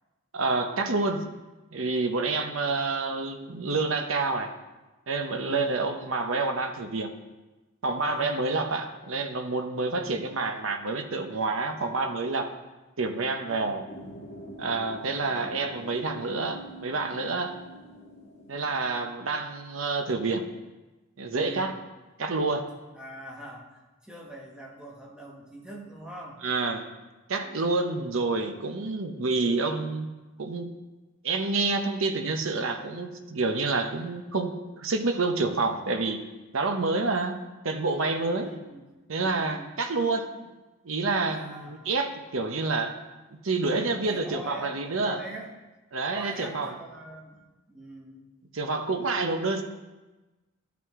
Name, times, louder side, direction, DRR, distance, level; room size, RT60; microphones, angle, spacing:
voice 1, 0.3-1.2 1.7-4.5 5.1-7.1 7.8-12.5 13.0-13.8 14.6-17.5 18.5-20.4 21.2-21.7 22.2-22.6 26.4-26.8 27.3-30.1 30.4-30.7 31.2-36.2 36.5-37.4 37.6-38.5 39.1-40.5 40.8-43.0 43.4-45.2 45.9-46.7 48.5-49.6, right 3 dB, 70° right, 6 dB, 0.8 m, -28 dB
voice 2, 2.5-2.8 5.4-5.8 8.0-8.4 13.4-13.8 21.3-21.7 22.9-26.4 27.4-27.6 38.1-38.8 39.2-39.7 41.3-41.9 44.0-44.8 45.0-45.5 46.1-48.3, right 1 dB, 5° right, -3 dB, 1.2 m, -43 dB
sound 1, 13.9-19.1, right 1 dB, 30° left, 1.3 m, -45 dB
12.5 x 5.9 x 3.6 m, 1.1 s
head